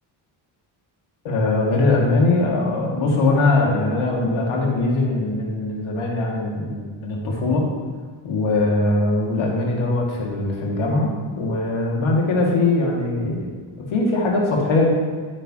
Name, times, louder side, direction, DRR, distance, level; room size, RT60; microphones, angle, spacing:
voice 1, 1.2-7.7 8.2-13.5 13.9-14.9, left 2 dB, 80° left, -1 dB, 2.2 m, -21 dB
9.7 x 8.7 x 2.9 m, 1.5 s
cardioid pair, 85°, 48 cm